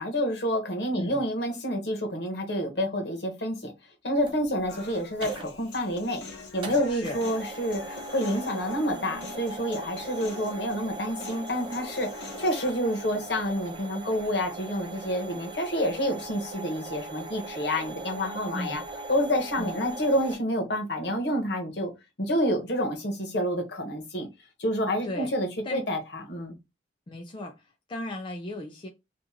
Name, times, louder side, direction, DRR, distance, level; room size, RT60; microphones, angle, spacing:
voice 1, 0.0-3.7 4.0-6.2 6.5-18.8 19.1-21.9 22.2-24.3 24.6-26.6, equal, 65° left, 1.1 m, -28 dB
voice 2, 0.9-1.2 6.9-7.2 18.5-18.8 19.6-19.8 25.0-25.3 25.6-25.8 27.1-28.9, left 1 dB, 30° left, 0.4 m, -36 dB
sound 1, 4.2-20.4, right 2 dB, 30° right, 0.7 m, -40 dB
Human voice, 4.7-12.7, left 4 dB, 90° left, 1.0 m, -44 dB
2.9 x 2.5 x 3.6 m
head